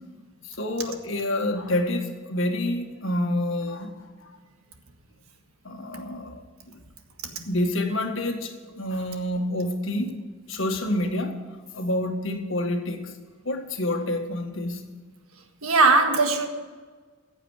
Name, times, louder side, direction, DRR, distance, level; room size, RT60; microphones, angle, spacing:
voice 1, 0.4-4.3 5.6-6.8 7.4-10.1 10.5-11.4 11.7-13.1 13.4-14.9, left 1 dB, 65° left, 4 dB, 1.6 m, -28 dB
voice 2, 15.6-16.5, right 3 dB, 85° right, 5 dB, 1.7 m, -19 dB
15.0 x 8.0 x 6.4 m, 1.5 s
head